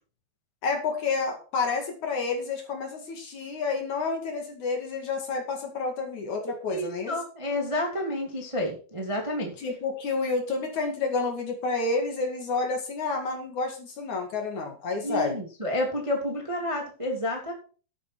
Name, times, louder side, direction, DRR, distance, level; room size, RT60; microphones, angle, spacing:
voice 1, 0.6-7.1 9.6-15.3, left 4 dB, 50° left, 3 dB, 3.0 m, -29 dB
voice 2, 6.7-9.5 15.0-17.5, left 1 dB, 15° right, 1 dB, 1.2 m, -30 dB
12.0 x 8.6 x 4.6 m, 0.38 s
omnidirectional pair, 5.2 m